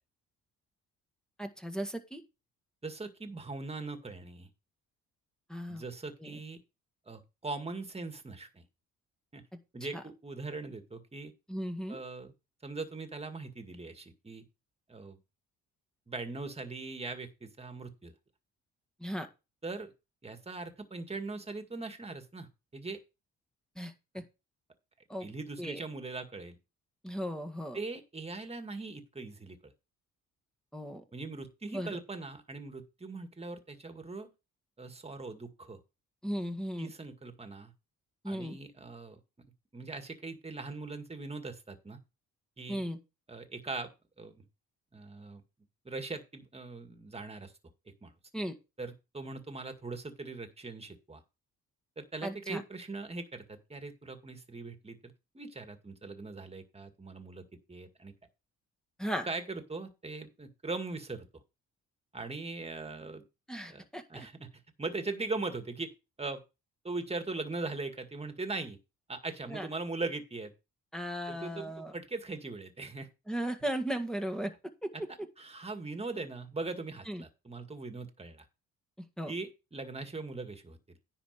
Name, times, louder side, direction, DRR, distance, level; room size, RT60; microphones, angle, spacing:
voice 1, 1.4-2.2 5.5-5.8 6.2-6.3 9.9-10.0 11.5-12.0 19.0-19.3 23.7-24.2 25.1-25.3 25.6-25.8 27.0-27.8 30.7-31.0 31.7-31.9 36.2-36.9 38.2-38.6 42.7-43.0 48.3-48.5 52.2-52.6 59.0-59.3 63.5-64.3 69.5-69.7 70.9-71.9 73.3-74.5 74.8-74.9 77.1-77.2 79.2-79.3, equal, ahead, 5 dB, 1.8 m, -36 dB
voice 2, 2.8-4.5 5.7-6.6 7.1-8.6 9.3-9.4 9.7-11.3 11.9-12.3 12.6-14.4 14.9-15.2 16.1-18.1 19.6-19.9 20.2-23.0 25.2-26.6 27.7-29.7 31.1-34.3 34.8-35.8 36.8-37.7 38.3-39.2 39.7-42.0 42.6-42.8 43.3-43.9 44.2-44.4 44.9-45.4 45.9-47.5 48.0-48.1 48.8-51.2 52.0-58.1 59.2-61.3 62.1-63.3 63.7-63.8 64.1-64.5 64.8-65.9 66.2-66.4 66.8-68.8 69.1-70.5 71.3-73.1 75.4-78.5 79.3-81.0, right 3 dB, 20° right, 7 dB, 2.0 m, -40 dB
10.5 x 4.3 x 6.7 m, 0.28 s
cardioid pair, 90°, 30 cm